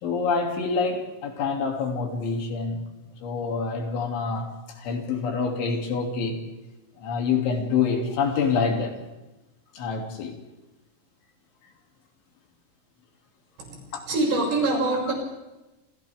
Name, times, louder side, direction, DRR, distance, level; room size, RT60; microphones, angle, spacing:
voice 1, 0.0-2.8 3.2-4.5 4.8-6.4 7.0-8.9 9.7-10.4 15.1-15.2, left 5 dB, 70° left, 2 dB, 5.1 m, -26 dB
voice 2, 14.1-15.1, right 2 dB, 60° right, -1 dB, 8.6 m, -24 dB
29.0 x 28.5 x 3.6 m, 1.0 s
omnidirectional pair, 5.6 m